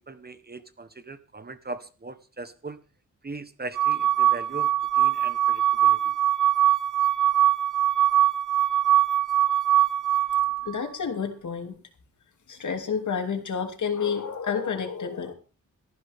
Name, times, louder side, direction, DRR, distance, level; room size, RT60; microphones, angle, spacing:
voice 1, 0.1-2.8 3.2-4.7 5.0-6.1, right 3 dB, 30° right, 12 dB, 1.2 m, -39 dB
sound 1, 3.8-10.8, right 11 dB, 85° right, 0.7 m, -22 dB
voice 2, 10.6-11.7 12.5-15.3, left 6 dB, 75° left, 5 dB, 2.9 m, -29 dB
18.5 x 14.5 x 3.6 m, 0.34 s
wide cardioid pair, 105°, 30 cm